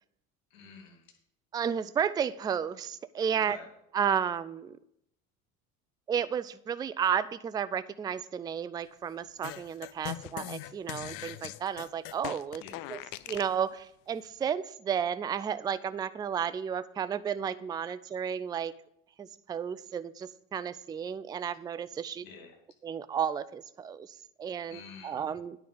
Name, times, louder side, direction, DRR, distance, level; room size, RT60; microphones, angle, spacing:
voice 1, 0.5-1.2 3.4-3.7 12.6-13.0 22.2-22.6 24.7-25.3, left 5 dB, 80° left, 1 dB, 2.6 m, -49 dB
voice 2, 1.5-3.6 3.9-4.8 6.1-12.6 12.9-13.0 13.3-18.7 19.2-22.2 22.8-24.1 24.4-25.6, right 8 dB, 10° right, 16 dB, 0.3 m, -32 dB
sound 1, 9.4-13.6, left 15 dB, 55° left, 0.6 m, -41 dB
10.0 x 5.3 x 6.9 m, 0.74 s
hypercardioid pair, 65°, 40 cm